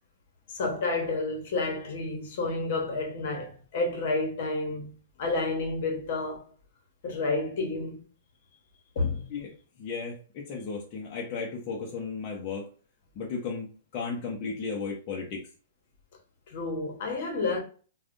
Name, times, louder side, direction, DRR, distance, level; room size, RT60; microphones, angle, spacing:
voice 1, 0.5-6.5 7.0-8.0 8.9-9.3 16.5-17.6, left 3 dB, 60° left, 1.0 m, -30 dB
voice 2, 9.8-10.1 10.5-12.6 13.2-13.7 13.9-15.4, left 5 dB, 35° left, 0.7 m, -34 dB
3.3 x 2.3 x 2.5 m
hypercardioid pair, 140°, 0 cm